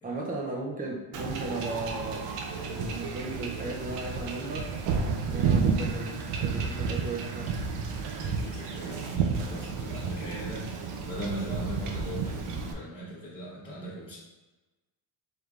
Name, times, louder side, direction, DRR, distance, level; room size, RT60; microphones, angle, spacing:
voice 1, 0.0-4.7 5.2-7.6, right 2 dB, 20° right, -1 dB, 0.5 m, -36 dB
Wind / Ocean / Boat Water vehicle, 1.1-12.7, right 5 dB, 90° right, 0.7 m, -31 dB
voice 2, 8.0-14.2, right 1 dB, 10° left, -11 dB, 0.9 m, -39 dB
4.8 x 3.3 x 2.4 m, 1.2 s
cardioid pair, 165°, 50 cm